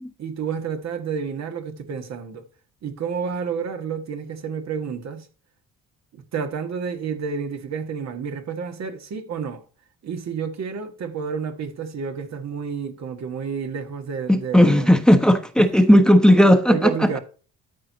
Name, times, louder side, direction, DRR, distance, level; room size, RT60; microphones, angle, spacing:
voice 1, 0.2-2.4 2.8-5.3 6.1-9.6 10.0-14.9 16.7-17.2, right 6 dB, 60° right, 1.7 m, -30 dB
voice 2, 14.3-17.1, equal, ahead, 1.0 m, -15 dB
13.0 x 4.7 x 4.0 m
cardioid pair, 90°, 30 cm